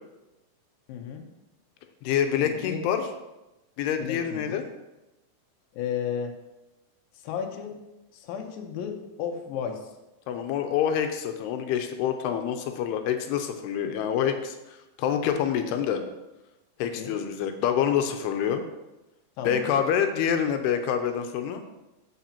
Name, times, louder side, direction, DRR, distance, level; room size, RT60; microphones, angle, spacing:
voice 1, 0.9-1.2 2.4-2.9 4.0-4.6 5.7-6.3 7.1-7.8 8.1-9.8 16.8-17.1 19.4-19.7, left 7 dB, 75° left, 3 dB, 2.5 m, -33 dB
voice 2, 2.0-3.0 3.8-4.6 10.3-16.0 16.8-18.6 19.4-21.6, left 8 dB, 90° left, 6 dB, 2.7 m, -26 dB
15.0 x 5.8 x 2.9 m, 0.99 s
omnidirectional pair, 4.6 m